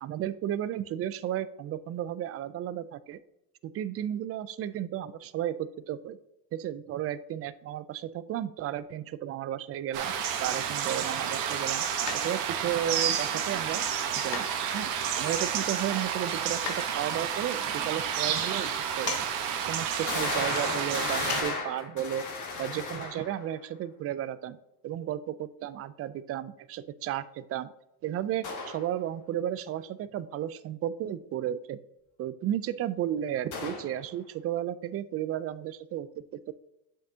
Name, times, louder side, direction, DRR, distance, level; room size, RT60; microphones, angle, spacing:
voice 1, 0.0-3.2 3.7-6.2 6.5-10.1 10.4-11.8 12.2-13.8 14.2-14.5 14.7-19.3 19.7-22.3 22.6-24.6 24.8-27.7 28.0-31.8 32.2-36.5, right 11 dB, 35° right, 16 dB, 0.4 m, -33 dB
sound 1, 9.9-21.4, right 8 dB, 70° right, 1.2 m, -30 dB
sound 2, 12.1-12.6 14.3-15.0 16.7-16.9 19.1-19.3 19.6-19.7 21.3-21.5 21.8-21.9, left 8 dB, 75° left, 1.2 m, -37 dB
sound 3, 18.4-18.5 19.1-19.2 20.1-23.5 28.4-28.8 33.5-34.0, left 4 dB, 40° left, 1.7 m, -34 dB
7.5 x 6.2 x 2.8 m, 0.84 s
supercardioid pair, 90°, 46 cm